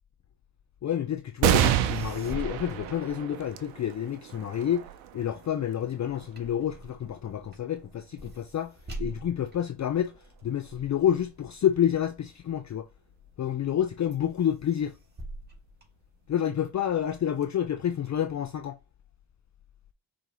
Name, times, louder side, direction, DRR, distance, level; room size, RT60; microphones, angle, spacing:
voice 1, 0.8-4.9 5.1-10.1 10.4-12.9 13.4-14.9 16.3-18.8, left 10 dB, 40° left, 0.5 m, -29 dB
sound 1, 1.4-8.3 8.9-9.0 10.1-10.7, right 12 dB, 90° right, 0.7 m, -30 dB
sound 2, 1.7-3.8 4.3-12.9 13.4-13.8 14.1-16.6 17.1-18.1, right 2 dB, 20° right, 2.3 m, -45 dB
5.2 x 3.4 x 2.9 m
supercardioid pair, 60°, 47 cm